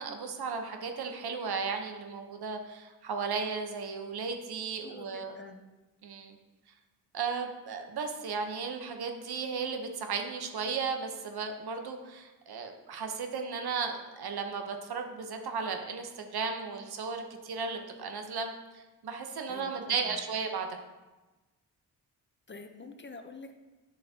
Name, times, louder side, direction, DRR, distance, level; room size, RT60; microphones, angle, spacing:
voice 1, 0.0-5.3 6.0-6.4 7.1-20.7, right 5 dB, 70° right, 5 dB, 1.0 m, -35 dB
voice 2, 4.8-5.6 19.5-20.2 22.5-23.5, left 3 dB, 30° left, 7 dB, 0.7 m, -47 dB
8.4 x 6.4 x 2.8 m, 1.1 s
cardioid pair, 55°, 40 cm